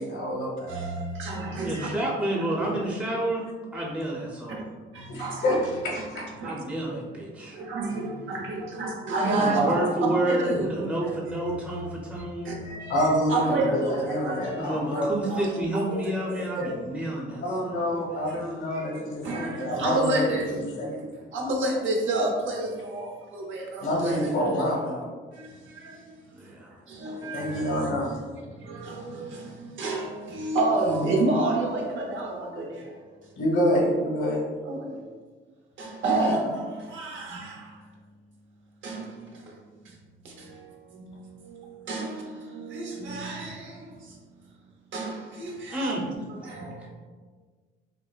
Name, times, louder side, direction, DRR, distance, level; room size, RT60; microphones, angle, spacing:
voice 1, 0.0-0.7 5.1-5.6 5.8-6.0 9.5-9.7 12.9-13.6 13.9-15.1 17.4-21.0 23.8-25.0 27.3-28.2 33.3-34.4, equal, 75° left, -3 dB, 1.2 m, -27 dB
voice 2, 0.7-1.9 3.8-3.9 4.9-5.6 6.1-6.5 7.5-10.9 11.4-12.2 12.4-15.0 15.3-16.7 18.3-18.4 18.7-20.6 21.3-24.5 25.3-26.2 26.9-27.9 28.5-33.1 34.6-35.0 35.8-37.9 38.8-39.6 39.8-40.0 40.2-44.2 44.9-45.9 46.3-46.9, right 2 dB, 75° right, -1 dB, 0.9 m, -30 dB
voice 3, 1.6-3.4 3.7-4.7 6.4-7.6 9.4-12.6 14.6-18.9 26.3-26.8 45.7-46.1 46.8-46.9, right 1 dB, 5° right, -3 dB, 0.7 m, -30 dB
5.7 x 2.1 x 2.4 m, 1.4 s
cardioid pair, 90°, 20 cm